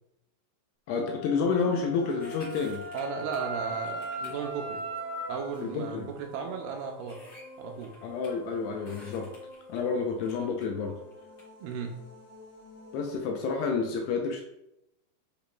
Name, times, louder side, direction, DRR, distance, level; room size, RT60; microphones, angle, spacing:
voice 1, 0.9-2.8 5.6-6.1 8.0-9.3 9.7-11.0 12.9-14.4, left 5 dB, 80° left, 2 dB, 2.6 m, -29 dB
Wind instrument woodwind instrument, 0.9-5.6, equal, 15° right, 0.5 m, -38 dB
sound 1, 2.1-3.5 3.8-4.4 5.2-5.3 6.1-6.2 6.4-6.5 7.0-8.3 8.8-9.8 10.2-11.4 11.9-12.0, left 1 dB, 35° left, 2.1 m, -52 dB
sound 2, 2.5-13.2, equal, 60° left, 4.6 m, -50 dB
voice 2, 2.9-4.8 5.3-7.2 7.6-7.9 11.6-12.0, right 6 dB, 80° right, 1 dB, 2.4 m, -35 dB
10.0 x 5.0 x 2.3 m, 0.83 s
omnidirectional pair, 5.2 m